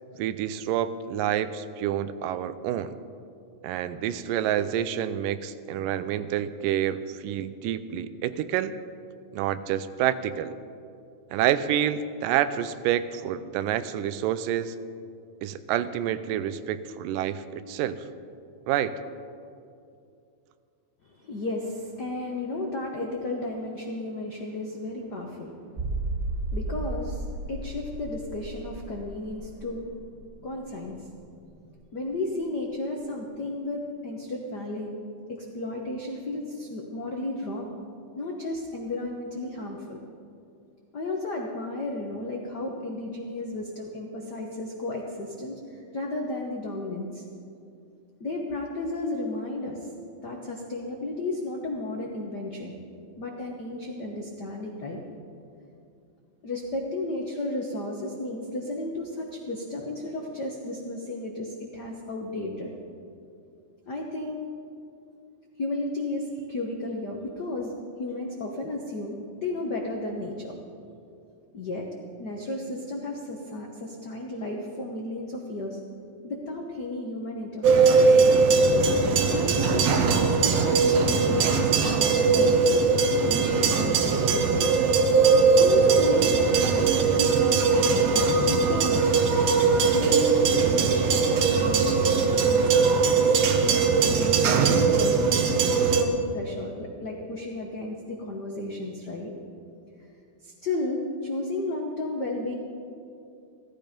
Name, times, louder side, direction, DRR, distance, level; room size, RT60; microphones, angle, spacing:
voice 1, 0.2-3.0 3.6-8.7 9.3-10.6 11.3-14.8 15.4-18.0 18.7-19.0, right 10 dB, 85° right, 13 dB, 2.2 m, -28 dB
voice 2, 21.0-25.6 26.5-29.9 30.4-31.1 31.9-34.9 35.3-37.8 38.2-40.0 40.9-47.2 48.2-49.9 50.2-52.7 53.2-55.0 56.4-62.7 63.9-64.4 65.6-67.7 68.0-70.6 71.5-71.9 72.2-75.8 76.2-78.4 79.3-82.6 83.2-84.7 85.6-89.1 89.7-93.3 94.0-95.5 95.8-99.3 100.4-102.5, left 2 dB, 75° left, 0 dB, 0.9 m, -33 dB
sound 1, 25.8-31.2 31.5-31.6 32.1-32.2, right 2 dB, 5° right, 1.6 m, -34 dB
sound 2, 77.6-96.0, right 4 dB, 65° right, 1.8 m, -20 dB
16.0 x 14.0 x 5.2 m, 2.5 s
omnidirectional pair, 3.8 m